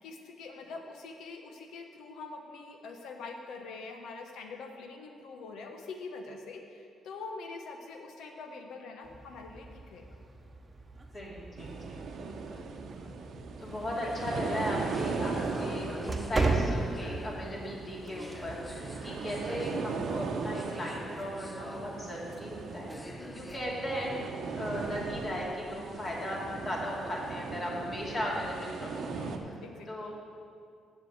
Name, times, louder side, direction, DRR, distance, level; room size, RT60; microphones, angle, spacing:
voice 1, 0.0-10.1 13.6-13.8 23.2-23.5 29.0-30.1, left 3 dB, 80° left, 4 dB, 1.1 m, -44 dB
sound 1, 9.0-19.9, right 3 dB, 25° right, 0.9 m, -37 dB
voice 2, 11.1-13.1 13.6-22.9 23.3-29.3 29.9-30.1, equal, 40° left, -4 dB, 2.7 m, -37 dB
sound 2, 11.6-29.4, right 4 dB, 65° right, 0.8 m, -38 dB
sound 3, 13.6-23.6, left 1 dB, 15° left, 0.6 m, -47 dB
7.4 x 6.7 x 7.9 m, 2.4 s
cardioid pair, 90°, 0 cm